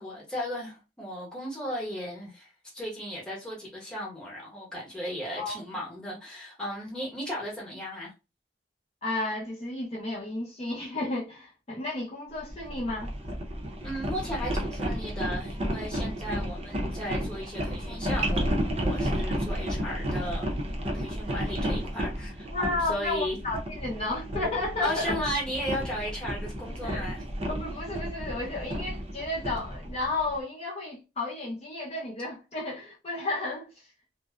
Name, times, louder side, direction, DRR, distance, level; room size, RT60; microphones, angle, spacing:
voice 1, 0.0-8.1 13.8-20.6 20.9-23.4 24.8-27.2, equal, 5° left, 0.9 m, -35 dB
voice 2, 9.0-13.1 22.5-25.1 26.8-27.0 27.5-33.7, left 2 dB, 35° left, 0.6 m, -32 dB
sound 1, 12.5-30.4, equal, 35° right, 0.6 m, -32 dB
2.6 x 2.1 x 2.3 m
head